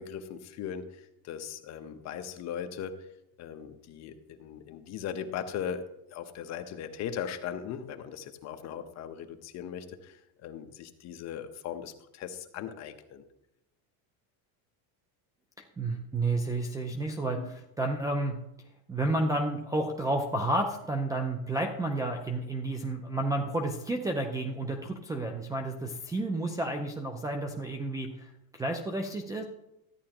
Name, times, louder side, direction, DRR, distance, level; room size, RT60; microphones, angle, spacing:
voice 1, 0.0-2.9 3.4-13.2 17.4-17.5, left 8 dB, 40° left, 7 dB, 0.9 m, -39 dB
voice 2, 15.8-18.4 18.9-28.3 28.6-29.4, right 2 dB, 10° right, 4 dB, 0.4 m, -31 dB
13.5 x 9.7 x 2.9 m, 0.86 s
cardioid pair, 150°, 43 cm